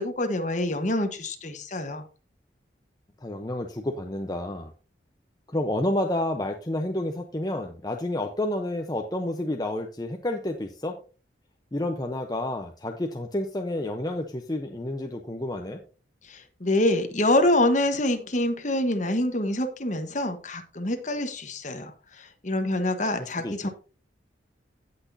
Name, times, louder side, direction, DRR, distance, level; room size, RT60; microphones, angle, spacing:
voice 1, 0.0-2.1 16.2-23.7, left 1 dB, 40° left, 7 dB, 1.2 m, -26 dB
voice 2, 3.2-4.7 5.5-10.9 11.7-15.8 23.4-23.7, left 1 dB, 20° left, 3 dB, 0.7 m, -30 dB
16.5 x 6.0 x 2.7 m, 0.35 s
head